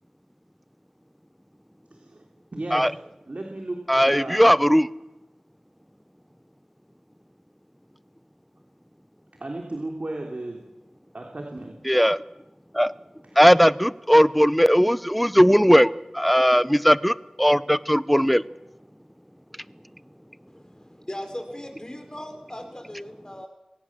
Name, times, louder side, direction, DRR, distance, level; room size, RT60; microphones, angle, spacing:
voice 1, 1.9-2.2 2.5-2.9 3.3-4.4 9.4-10.6 11.1-11.8 13.2-13.4, right 2 dB, 65° right, 1 dB, 3.1 m, -34 dB
voice 2, 3.9-4.9 11.9-12.2 12.7-12.9 13.4-18.4, equal, ahead, 18 dB, 0.7 m, -18 dB
voice 3, 20.5-23.5, left 1 dB, 30° left, 5 dB, 5.0 m, -38 dB
22.5 x 18.0 x 7.4 m, 0.97 s
wide cardioid pair, 40°, 2 cm